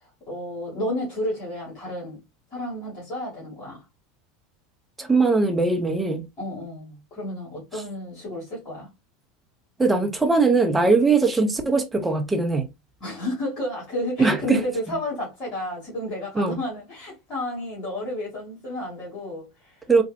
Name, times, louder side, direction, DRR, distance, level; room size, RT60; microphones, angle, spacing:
voice 1, 0.3-2.2 2.5-3.8 6.4-8.9 13.0-19.8, left 1 dB, 45° left, 2.4 m, -31 dB
voice 2, 5.0-6.3 7.7-7.8 9.8-12.7 14.2-14.6 16.3-16.6 19.9-20.0, right 3 dB, 15° right, 1.0 m, -20 dB
4.4 x 2.4 x 2.5 m
hypercardioid pair, 80°, 0 cm